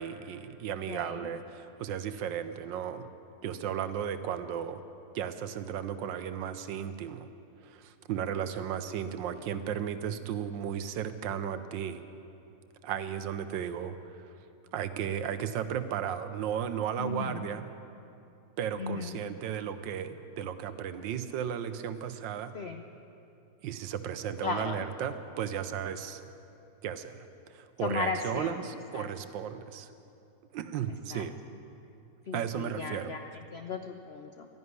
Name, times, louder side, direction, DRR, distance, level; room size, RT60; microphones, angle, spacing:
voice 1, 0.0-3.1 3.4-4.8 5.1-7.3 7.6-12.0 12.8-14.3 14.7-17.6 18.6-22.5 23.6-26.2 26.8-29.9 30.5-31.4 32.3-33.1, right 8 dB, 85° right, 11 dB, 1.4 m, -35 dB
voice 2, 0.9-1.2 17.0-17.5 18.8-19.2 22.5-22.8 24.4-24.8 27.8-28.6 28.9-29.1 31.1-31.3 32.3-34.5, left 5 dB, 85° left, 6 dB, 0.5 m, -36 dB
12.5 x 11.0 x 9.6 m, 2.7 s
omnidirectional pair, 2.0 m